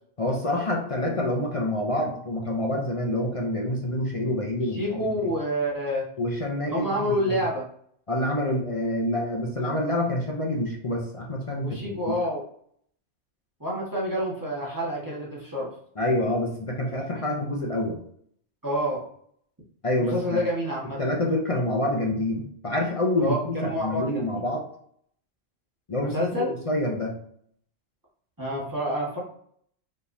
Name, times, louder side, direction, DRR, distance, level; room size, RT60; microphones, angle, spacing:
voice 1, 0.2-5.3 6.2-7.4 8.1-12.2 16.0-18.0 19.8-20.4 21.0-24.6 25.9-27.2, left 1 dB, 40° left, 0 dB, 0.5 m, -27 dB
voice 2, 4.7-6.1 6.6-7.6 11.6-12.4 13.6-15.7 18.6-19.0 20.0-21.0 23.2-24.4 26.0-26.5 28.4-29.2, equal, 15° right, -6 dB, 1.3 m, -28 dB
5.3 x 3.4 x 2.6 m, 0.64 s
omnidirectional pair, 1.3 m